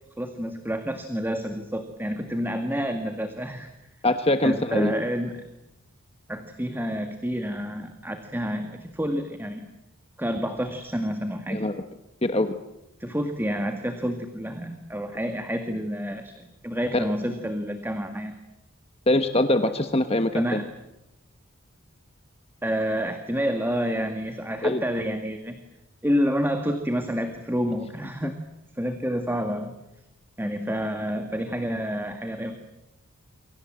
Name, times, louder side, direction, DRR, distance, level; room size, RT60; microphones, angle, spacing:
voice 1, 0.2-3.7 4.4-5.4 6.3-9.7 10.2-11.7 13.0-18.4 20.3-20.6 22.6-25.6 26.0-28.4 28.7-29.7 30.4-32.6, equal, 10° right, 7 dB, 1.9 m, -29 dB
voice 2, 4.0-5.0 11.5-11.8 12.2-12.5 16.9-17.1 19.1-20.6 24.6-24.8, left 1 dB, 25° left, 9 dB, 1.2 m, -23 dB
29.0 x 24.5 x 7.7 m, 0.94 s
head